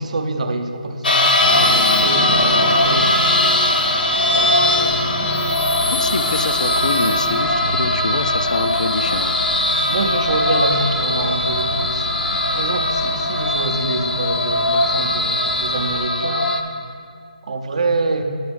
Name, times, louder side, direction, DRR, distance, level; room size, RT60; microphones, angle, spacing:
voice 1, 0.0-3.3 4.2-5.0 6.1-6.3 7.1-7.2 7.6-7.7 9.9-12.1 12.5-16.5 17.5-18.2, right 2 dB, 50° right, 6 dB, 0.6 m, -26 dB
sound 1, 1.0-16.6, left 1 dB, 80° left, 0.8 m, -19 dB
sound 2, 1.4-16.1, equal, 5° left, 0.5 m, -32 dB
sound 3, 4.7-13.9, right 1 dB, 80° right, 0.9 m, -33 dB
voice 2, 5.9-9.3, left 4 dB, 60° left, 11 dB, 0.4 m, -25 dB
9.3 x 9.2 x 3.5 m, 2.2 s
figure-of-eight pair, 160°, 5 cm